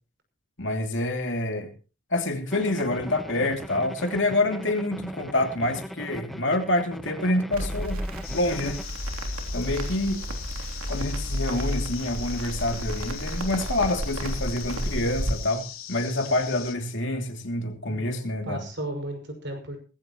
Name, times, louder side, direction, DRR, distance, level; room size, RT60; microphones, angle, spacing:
voice 1, 0.6-1.7 2.1-8.0 8.3-8.8 9.5-10.2 10.9-18.6, left 1 dB, 55° left, 4 dB, 2.8 m, -27 dB
sound 1, 2.5-8.8, equal, ahead, 0.8 m, -39 dB
Crackle, 7.5-15.3, equal, 85° right, 3.2 m, -32 dB
sound 2, 8.2-16.7, left 10 dB, 75° left, 2.9 m, -41 dB
voice 2, 17.9-19.8, right 1 dB, 55° right, 4 dB, 5.6 m, -35 dB
19.5 x 15.5 x 3.1 m, 0.35 s
head